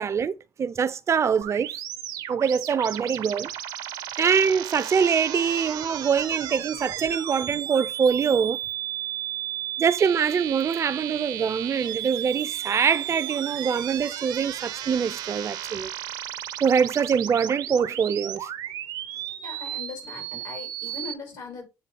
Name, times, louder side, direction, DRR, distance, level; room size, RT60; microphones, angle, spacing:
voice 1, 0.0-1.7 2.3-3.5 4.2-8.6 9.8-15.9 16.6-18.5, right 6 dB, 40° right, 0.4 m, -24 dB
sound 1, 1.4-21.1, right 12 dB, 90° right, 0.8 m, -34 dB
voice 2, 19.4-21.7, left 5 dB, 80° left, 4.4 m, -39 dB
8.4 x 3.1 x 4.4 m
cardioid pair, 95°, 7 cm